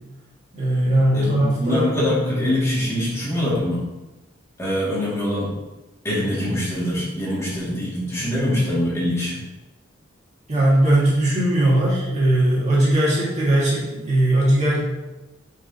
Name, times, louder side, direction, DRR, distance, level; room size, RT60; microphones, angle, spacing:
voice 1, 0.5-1.9 2.3-2.4 10.5-14.8, right 1 dB, 35° right, -6 dB, 2.0 m, -19 dB
voice 2, 1.1-3.9 4.6-5.5 6.0-9.4, left 1 dB, 15° left, -8 dB, 2.2 m, -23 dB
8.7 x 4.9 x 2.9 m, 1.1 s
head